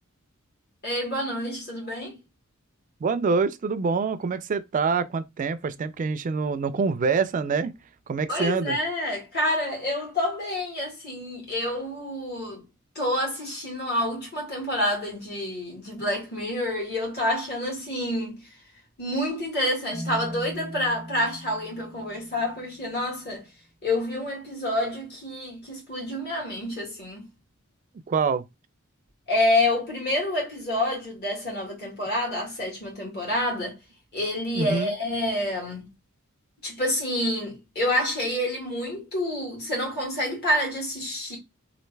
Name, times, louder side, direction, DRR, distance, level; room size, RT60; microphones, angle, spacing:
voice 1, 0.8-2.2 8.3-12.6 13.0-18.5 19.0-23.5 23.8-27.3 29.3-33.8 34.1-35.9 36.6-41.4, left 1 dB, 50° left, 1.9 m, -28 dB
voice 2, 3.0-7.7 8.1-8.8 28.1-28.4 34.5-34.9, right 5 dB, 40° right, 0.3 m, -25 dB
Marimba xylophone, 19.9-22.9, equal, 15° left, 0.5 m, -39 dB
3.2 x 2.5 x 3.2 m
head